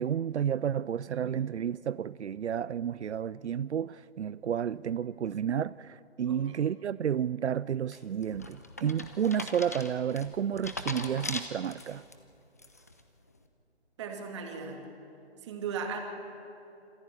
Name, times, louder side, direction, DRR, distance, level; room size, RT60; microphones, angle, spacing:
voice 1, 0.0-12.0, right 8 dB, 80° right, 0.5 m, -31 dB
voice 2, 6.3-6.6 14.0-14.8 15.4-16.0, right 6 dB, 25° right, 2.4 m, -37 dB
sound 1, 7.9-12.1 12.6-13.0, left 2 dB, 15° left, 0.5 m, -40 dB
26.5 x 14.0 x 9.2 m
figure-of-eight pair, 155°, 34 cm